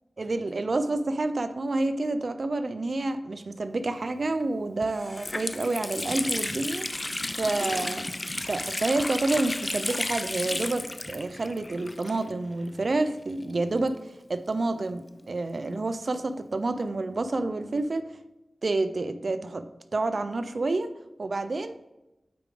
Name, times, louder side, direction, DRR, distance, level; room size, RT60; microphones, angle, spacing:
voice 1, 0.2-8.1 8.5-14.0 14.3-18.0 18.6-19.7 19.9-20.9 21.2-21.8, right 2 dB, 65° right, 11 dB, 0.6 m, -29 dB
Water tap faucet, 4.3-4.4 4.8-12.5 12.8-12.9 13.7-15.3, left 2 dB, 30° left, 0.5 m, -33 dB
8.6 x 4.8 x 3.8 m, 0.93 s
cardioid pair, 50°, 0 cm